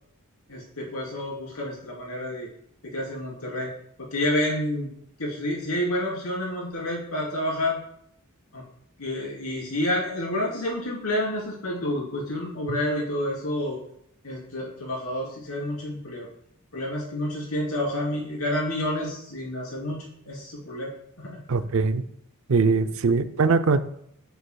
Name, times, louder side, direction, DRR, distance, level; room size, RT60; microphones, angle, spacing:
voice 1, 0.5-2.5 2.8-3.7 4.0-4.9 5.2-7.8 8.5-8.6 9.0-13.8 14.2-16.3 16.7-20.9 21.2-21.4, left 1 dB, 75° left, -4 dB, 3.4 m, -29 dB
voice 2, 21.5-22.0 22.5-23.8, right 4 dB, 65° right, 11 dB, 0.5 m, -21 dB
11.0 x 6.9 x 2.3 m, 0.72 s
head